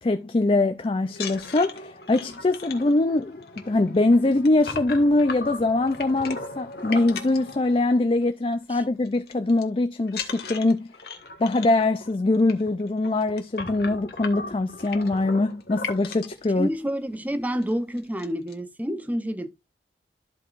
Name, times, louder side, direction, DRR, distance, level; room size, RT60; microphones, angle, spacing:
voice 1, 0.0-10.9 11.4-16.7, left 2 dB, 30° left, 0.4 m, -23 dB
sound 1, 1.1-8.2 8.5-8.8 9.0-9.6 10.1-16.4 17.1-17.2 17.5-17.7 18.0-18.5, left 4 dB, 55° left, 1.5 m, -37 dB
voice 2, 16.6-19.5, equal, 10° right, 0.7 m, -28 dB
13.5 x 4.8 x 2.5 m
head